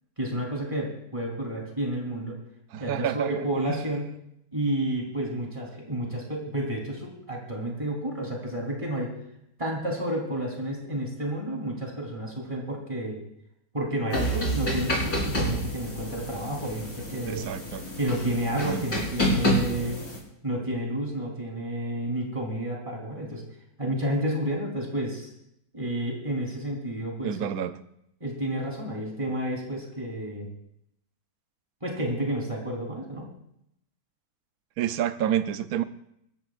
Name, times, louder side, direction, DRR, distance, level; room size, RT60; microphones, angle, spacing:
voice 1, 0.2-2.4 2.8-4.1 4.5-9.2 9.6-13.2 13.7-17.4 18.0-20.0 20.4-23.4 23.8-25.3 25.7-27.4 28.2-30.5 31.8-33.3, right 1 dB, 20° right, -1 dB, 3.9 m, -30 dB
voice 2, 2.7-3.8 17.3-17.8 18.6-18.9 27.2-27.7 34.8-35.8, right 10 dB, 65° right, 11 dB, 1.2 m, -29 dB
sound 1, 14.1-20.2, equal, 65° left, 4.8 m, -29 dB
25.5 x 14.0 x 2.5 m, 0.77 s
omnidirectional pair, 1.8 m